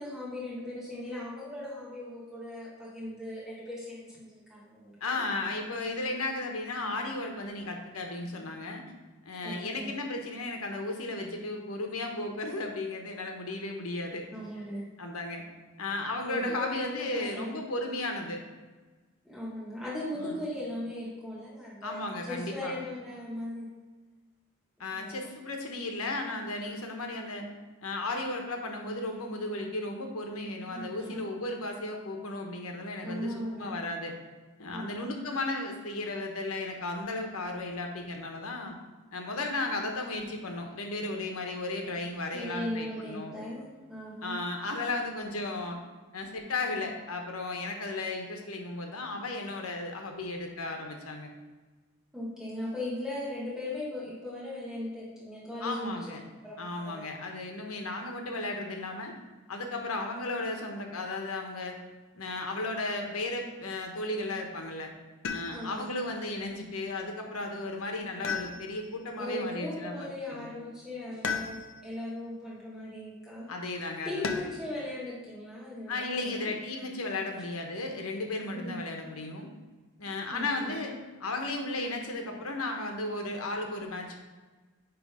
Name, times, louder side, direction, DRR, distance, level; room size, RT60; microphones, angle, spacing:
voice 1, 0.0-5.2 9.4-9.9 14.3-14.8 16.2-17.6 19.2-23.7 24.9-25.3 30.7-31.2 33.0-33.7 34.7-35.1 42.3-44.4 52.1-55.9 56.4-57.1 65.5-65.9 69.2-73.5 74.0-76.5 78.5-78.8 80.3-80.8, left 1 dB, 5° right, -8 dB, 1.5 m, -38 dB
voice 2, 5.0-8.8 9.2-14.3 15.0-15.4 15.8-18.4 20.1-20.4 21.8-22.8 24.8-27.4 27.8-34.1 34.6-38.7 39.1-43.3 44.2-45.8 46.1-51.3 55.6-56.2 56.6-59.1 59.5-61.8 62.1-64.9 65.3-70.5 73.5-74.3 75.9-79.5 80.0-80.9 81.2-84.2, left 2 dB, 85° left, 3 dB, 1.1 m, -35 dB
sound 1, 65.2-65.9 68.2-69.0 71.2-71.9 74.2-74.8 76.4-77.1, left 5 dB, 60° left, 0.6 m, -36 dB
9.3 x 3.3 x 4.9 m, 1.3 s
head